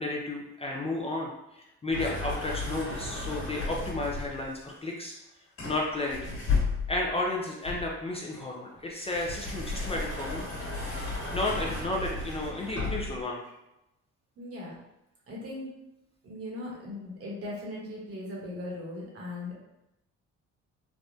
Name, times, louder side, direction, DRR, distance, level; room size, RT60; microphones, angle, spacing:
voice 1, 0.0-5.2 5.6-6.4 6.9-10.5 10.8-13.4, left 2 dB, 20° left, -2 dB, 0.4 m, -33 dB
sound 1, 1.9-4.5 5.6-7.1 7.6-13.2, left 3 dB, 50° left, 1.3 m, -34 dB
voice 2, 14.4-14.8 15.3-15.7 16.2-19.6, left 1 dB, 50° right, -3 dB, 1.1 m, -38 dB
3.5 x 2.1 x 2.6 m, 0.90 s
cardioid pair, 90°, 30 cm